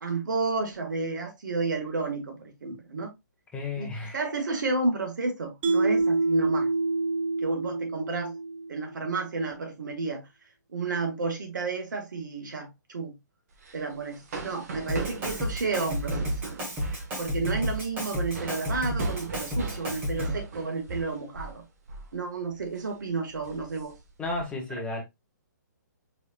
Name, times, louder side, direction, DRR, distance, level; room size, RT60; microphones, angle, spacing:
voice 1, 0.0-3.1 3.7-6.7 7.4-8.3 8.7-10.3 10.7-13.1 13.7-16.4 16.9-21.6 22.1-24.0, right 3 dB, 75° right, 1.9 m, -31 dB
voice 2, 3.5-4.2 24.2-25.0, left 2 dB, 10° left, 1.4 m, -33 dB
Mallet percussion, 5.6-8.9, right 3 dB, 35° right, 1.0 m, -26 dB
sound 1, 13.5-21.6 21.9-22.1 22.5-22.8 23.3-24.4, right 3 dB, 55° right, 1.6 m, -40 dB
Drum kit, 14.9-20.5, equal, 20° right, 1.7 m, -31 dB
4.9 x 4.1 x 2.4 m
hypercardioid pair, 150°, 10 cm